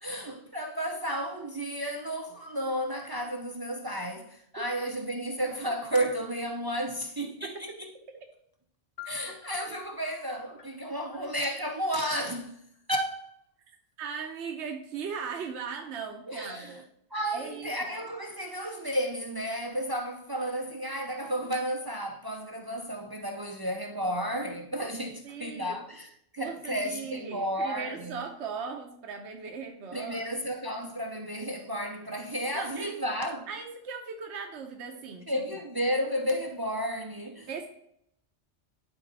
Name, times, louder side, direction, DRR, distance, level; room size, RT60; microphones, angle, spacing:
voice 1, 0.0-7.9 9.0-13.3 16.3-16.8 17.1-28.2 29.9-33.5 35.3-37.5, equal, 30° right, 0.5 m, -32 dB
voice 2, 7.4-7.8 8.1-8.2 14.0-16.8 17.3-17.9 25.2-25.8 26.4-30.3 32.5-32.9 33.5-35.4 37.5-37.7, right 6 dB, 75° right, 1.1 m, -38 dB
sound 1, 9.0-12.8, left 10 dB, 55° left, 1.0 m, -50 dB
11.5 x 3.9 x 4.0 m
omnidirectional pair, 1.2 m